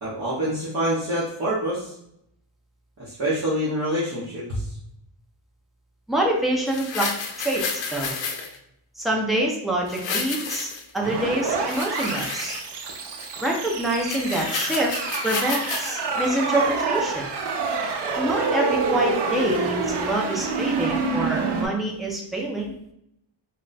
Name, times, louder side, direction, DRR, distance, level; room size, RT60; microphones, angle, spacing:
voice 1, 0.0-1.9 3.0-4.8, right 1 dB, 35° right, -10 dB, 0.8 m, -26 dB
voice 2, 6.1-7.1 7.4-8.1 9.0-12.6 13.4-14.9 15.2-17.3 18.2-22.7, right 1 dB, ahead, -1 dB, 0.3 m, -26 dB
sound 1, 6.7-8.6 9.9-11.0 11.5-12.9 13.2-13.3 13.7-13.8 14.0-15.9 16.4-16.5, left 5 dB, 65° left, 0.6 m, -31 dB
sound 2, 11.0-21.7, right 4 dB, 60° right, 0.5 m, -27 dB
2.2 x 2.1 x 3.9 m, 0.75 s
wide cardioid pair, 160°, 48 cm